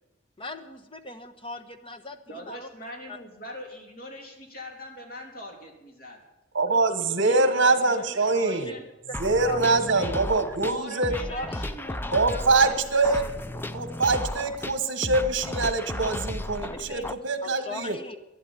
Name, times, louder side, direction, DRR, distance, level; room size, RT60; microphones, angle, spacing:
voice 1, 0.4-2.7 3.1-3.2 7.1-7.5 9.1-9.2 9.4-9.8 11.3-11.7 16.7-17.0 17.4-18.2, left 1 dB, 30° left, 8 dB, 1.2 m, -38 dB
voice 2, 2.3-6.2 7.0-8.8 9.7-10.1 10.6-13.3, left 1 dB, 50° left, 1 dB, 3.2 m, -41 dB
voice 3, 6.5-8.7 9.2-11.1 12.1-13.2 13.7-18.0, right 3 dB, 65° right, 8 dB, 1.3 m, -24 dB
sound 1, 9.1-17.1, left 1 dB, 10° left, 0.5 m, -34 dB
11.5 x 11.5 x 8.9 m, 0.98 s
head